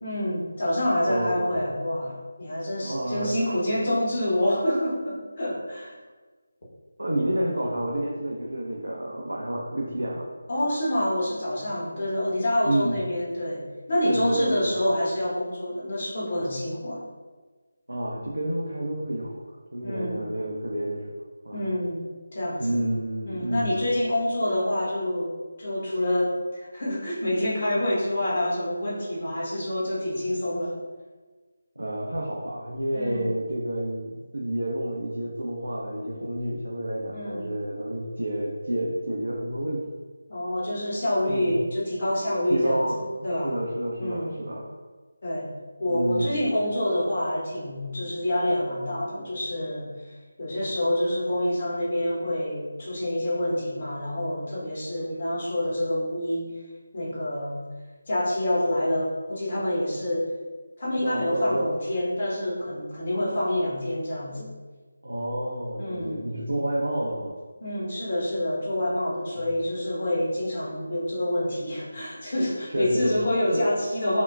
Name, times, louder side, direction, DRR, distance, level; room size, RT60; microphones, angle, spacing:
voice 1, 0.0-6.0 10.5-17.1 19.8-20.2 21.5-22.0 22.3-22.8 23.2-25.3 25.6-30.8 32.9-33.3 37.1-37.5 40.3-43.6 44.0-44.4 45.2-45.5 45.8-50.1 50.4-56.5 56.9-57.6 58.1-60.3 60.8-64.5 65.8-66.2 67.6-74.2, left 1 dB, 40° left, -6 dB, 1.0 m, -27 dB
voice 2, 1.1-1.7 2.8-3.4 3.8-4.0 7.0-10.3 12.6-13.0 14.0-14.8 17.9-21.0 21.4-21.7 22.6-23.8 31.8-39.8 41.3-41.5 42.5-43.0 43.3-44.7 45.9-46.4 61.0-61.7 65.0-67.3 69.3-69.5 72.7-73.2 73.5-73.6, right 1 dB, 70° right, -2 dB, 0.6 m, -29 dB
5.7 x 2.2 x 2.3 m, 1.4 s
figure-of-eight pair, 160°, 0 cm